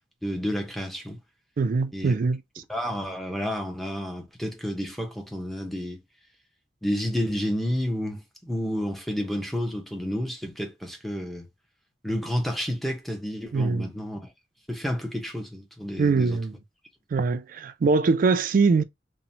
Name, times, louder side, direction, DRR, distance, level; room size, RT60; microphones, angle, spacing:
voice 1, 0.2-1.2 1.9-2.2 2.7-6.0 6.8-11.5 12.0-14.2 14.7-16.4, equal, ahead, 0.6 m, -30 dB
voice 2, 1.6-2.4 13.5-13.9 16.0-16.6 17.1-18.8, right 4 dB, 45° right, 0.3 m, -22 dB
2.9 x 2.1 x 2.6 m
head